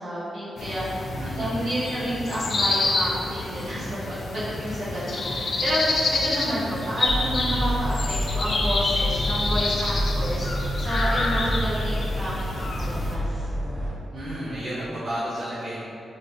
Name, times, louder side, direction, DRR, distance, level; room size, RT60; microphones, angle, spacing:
voice 1, 0.0-1.0 1.4-5.8 6.1-13.5, equal, 75° right, -10 dB, 1.1 m, -30 dB
sound 1, 0.6-13.2, left 2 dB, 50° left, 0.4 m, -28 dB
voice 2, 1.2-1.7 14.1-15.8, equal, 55° right, -13 dB, 0.8 m, -32 dB
sound 2, 7.0-13.9, equal, 20° right, 0.8 m, -28 dB
3.0 x 2.8 x 3.0 m, 2.7 s
wide cardioid pair, 120°, 0 cm